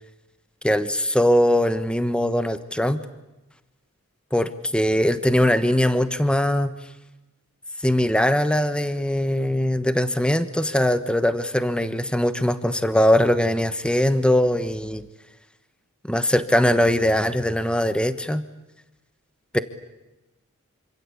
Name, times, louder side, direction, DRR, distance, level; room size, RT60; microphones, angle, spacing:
voice 1, 0.6-3.0 4.3-6.7 7.8-15.0 16.1-18.4 19.5-19.6, left 1 dB, 5° left, 11 dB, 1.1 m, -21 dB
27.0 x 26.0 x 8.5 m, 1.0 s
head